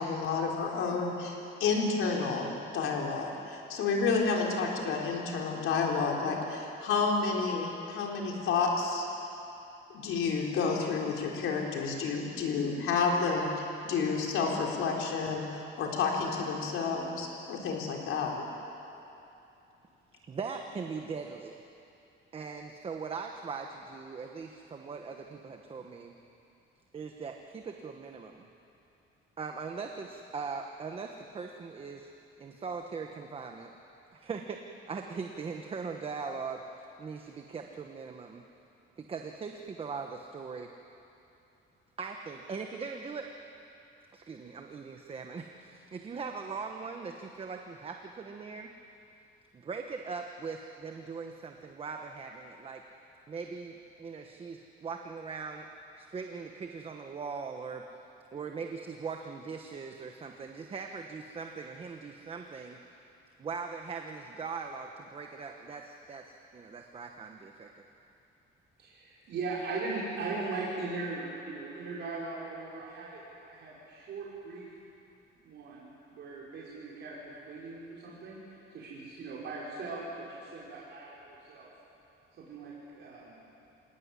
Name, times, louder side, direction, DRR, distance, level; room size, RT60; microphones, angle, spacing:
voice 1, 0.0-2.5 2.7-9.1 9.9-18.5, left 4 dB, 75° left, 0 dB, 4.0 m, -30 dB
voice 2, 20.2-21.6 22.3-26.1 26.9-28.5 29.4-32.1 32.4-33.7 34.1-34.6 34.9-38.4 39.0-40.7 42.0-43.3 44.1-48.7 49.5-52.8 53.3-55.7 56.0-57.8 58.3-62.8 63.4-67.8, right 5 dB, 25° right, 4 dB, 1.1 m, -40 dB
voice 3, 68.8-74.7 75.4-81.7 82.4-83.4, right 3 dB, 55° right, -6 dB, 5.4 m, -39 dB
27.0 x 18.5 x 9.7 m, 2.8 s
cardioid pair, 180°, 21 cm